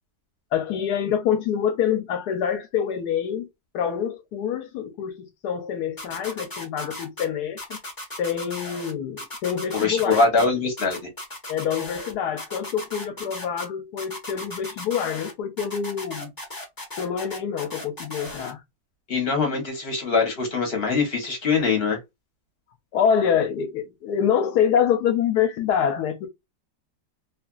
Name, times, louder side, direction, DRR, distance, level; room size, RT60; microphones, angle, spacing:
voice 1, 0.5-3.5 3.7-7.6 8.2-10.5 11.5-16.3 17.0-18.6 22.9-26.3, left 8 dB, 75° left, 1.1 m, -26 dB
sound 1, 6.0-7.2 7.6-8.9 9.2-10.4 10.8-12.1 12.4-13.6 14.0-15.3 15.6-18.5, left 1 dB, 25° left, 0.5 m, -36 dB
voice 2, 9.7-11.1 19.1-22.0, left 4 dB, 45° left, 0.9 m, -23 dB
2.9 x 2.4 x 2.2 m
omnidirectional pair, 1.9 m